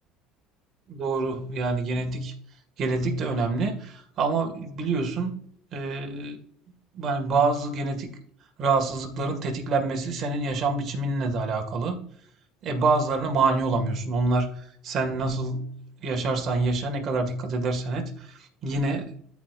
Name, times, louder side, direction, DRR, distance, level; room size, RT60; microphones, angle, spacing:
voice 1, 0.9-2.3 2.8-5.4 5.7-6.4 6.9-8.1 8.6-12.0 12.6-19.1, right 3 dB, 40° right, 3 dB, 1.9 m, -26 dB
14.0 x 4.8 x 2.5 m, 0.65 s
cardioid pair, 130°, 0 cm